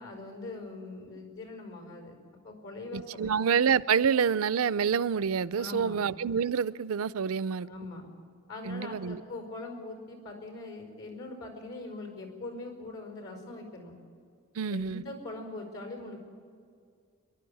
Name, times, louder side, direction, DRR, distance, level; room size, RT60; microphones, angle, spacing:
voice 1, 0.0-2.2 2.4-3.3 5.6-6.0 7.6-8.1 8.5-13.9 14.7-16.2, left 2 dB, 70° left, 5.1 m, -42 dB
voice 2, 2.9-7.7 8.7-9.2 14.6-15.0, right 7 dB, 75° right, 0.5 m, -27 dB
29.0 x 11.5 x 8.6 m
head